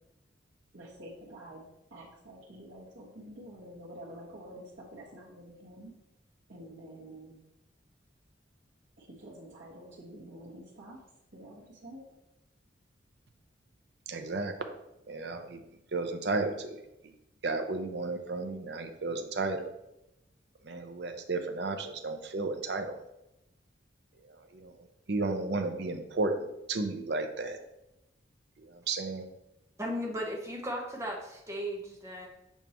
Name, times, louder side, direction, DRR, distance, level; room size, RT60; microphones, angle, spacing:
voice 1, 0.7-1.6 1.9-5.9 6.5-7.4 9.0-11.0 11.3-12.0, right 1 dB, 85° right, -7 dB, 1.5 m, -48 dB
voice 2, 14.1-14.7 15.1-15.6 15.9-17.1 17.4-19.7 20.6-23.0 24.2-27.6 28.6-29.3, right 3 dB, 60° right, 6 dB, 0.6 m, -33 dB
voice 3, 29.8-32.3, equal, 15° right, -1 dB, 1.0 m, -36 dB
7.1 x 4.6 x 3.0 m, 0.88 s
head